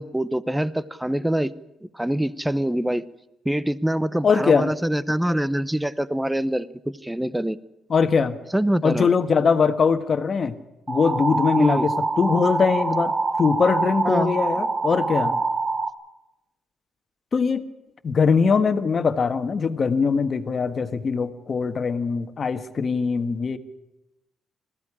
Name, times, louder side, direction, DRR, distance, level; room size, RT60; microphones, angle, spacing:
voice 1, 0.0-1.5 1.8-3.1 3.4-7.6 8.5-9.1 11.6-11.9 14.0-14.3, right 1 dB, 5° right, 16 dB, 0.8 m, -24 dB
voice 2, 4.2-4.7 7.9-8.4 8.8-10.6 10.9-15.4 17.3-17.6 18.0-23.6, left 5 dB, 45° left, 9 dB, 1.5 m, -21 dB
sound 1, 10.9-15.9, right 3 dB, 35° right, 1.7 m, -25 dB
20.5 x 15.0 x 10.0 m, 0.95 s
cardioid pair, 90°, 0 cm